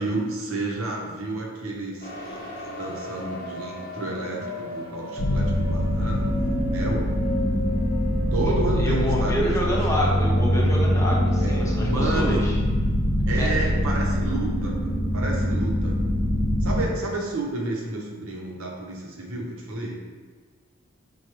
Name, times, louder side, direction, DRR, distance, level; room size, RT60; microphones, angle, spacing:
voice 1, 0.0-7.0 8.3-10.0 11.4-12.5 13.2-16.0 16.6-19.9, right 2 dB, 85° right, -1 dB, 0.7 m, -31 dB
sound 1, 2.0-12.0, left 1 dB, 50° left, 0.7 m, -36 dB
sound 2, 5.2-16.8, equal, 30° right, 0.6 m, -23 dB
voice 2, 8.8-12.6 13.3-13.8, equal, 15° left, -3 dB, 0.6 m, -28 dB
4.5 x 2.2 x 3.0 m, 1.5 s
head